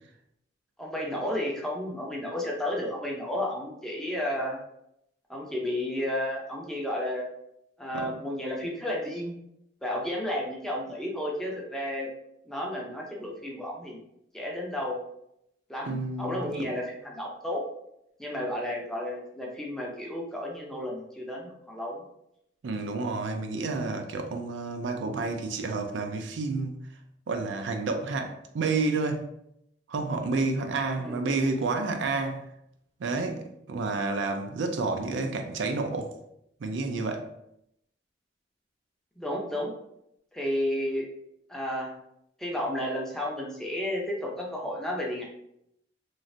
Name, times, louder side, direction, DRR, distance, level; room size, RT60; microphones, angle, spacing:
voice 1, 0.8-4.6 5.3-7.3 7.8-9.4 9.8-12.1 12.5-14.0 14.3-15.0 15.7-17.6 18.2-22.0 31.0-31.2 39.2-39.7 40.3-41.1 41.5-41.9 42.4-45.3, left 1 dB, 5° left, 0.5 m, -32 dB
voice 2, 15.9-16.7 22.6-26.8 27.3-29.3 29.9-32.5 33.0-36.1 36.6-37.3, right 3 dB, 80° right, 0.4 m, -30 dB
3.1 x 2.5 x 2.5 m
head